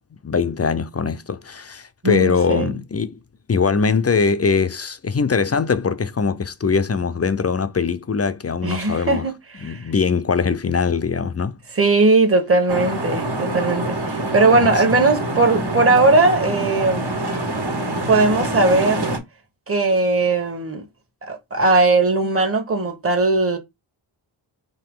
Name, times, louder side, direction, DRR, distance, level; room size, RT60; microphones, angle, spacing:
voice 1, 0.2-3.2 3.5-9.3 9.6-11.6 14.2-14.3 14.8-14.9, left 5 dB, 30° left, 0.6 m, -21 dB
voice 2, 2.0-2.7 8.6-9.9 11.7-17.3 17.9-19.1 19.7-20.8 21.2-23.6, right 3 dB, 30° right, 1.4 m, -19 dB
sound 1, 12.7-19.2, right 1 dB, 55° right, 1.7 m, -25 dB
4.7 x 2.8 x 3.7 m
cardioid pair, 45°, 48 cm